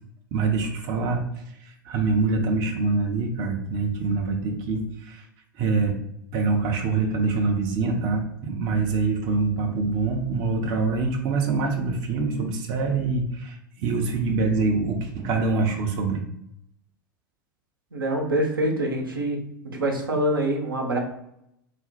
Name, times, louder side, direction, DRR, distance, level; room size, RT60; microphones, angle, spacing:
voice 1, 0.3-1.2 1.6-5.3 5.5-6.0 6.3-16.2, right 4 dB, 40° right, 2 dB, 0.7 m, -25 dB
voice 2, 17.9-19.4 19.7-21.0, right 1 dB, 80° right, 0 dB, 0.8 m, -25 dB
4.1 x 2.1 x 4.0 m, 0.78 s
figure-of-eight pair, 85°, 11 cm